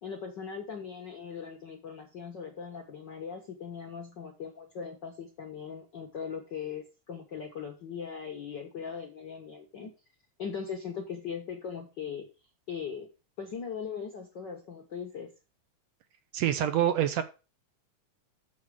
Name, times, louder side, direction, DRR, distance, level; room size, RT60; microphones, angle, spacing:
voice 1, 0.0-9.9 10.4-12.3 12.7-13.1 13.4-15.3, left 6 dB, 55° left, 3 dB, 1.3 m, -39 dB
voice 2, 16.3-17.2, right 11 dB, 75° right, 9 dB, 1.7 m, -26 dB
7.2 x 6.5 x 4.9 m, 0.31 s
omnidirectional pair, 3.4 m